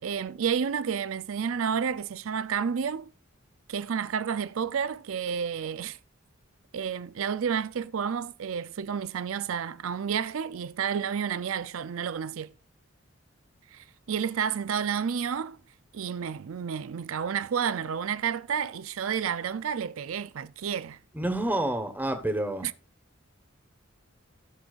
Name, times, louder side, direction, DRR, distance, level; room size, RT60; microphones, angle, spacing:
voice 1, 0.0-3.1 3.7-6.0 6.7-12.5 13.7-15.6 15.9-21.0 22.6-22.7, right 7 dB, 90° right, 0.5 m, -30 dB
voice 2, 21.1-22.7, right 1 dB, 10° right, 1.3 m, -28 dB
17.0 x 6.2 x 2.5 m
head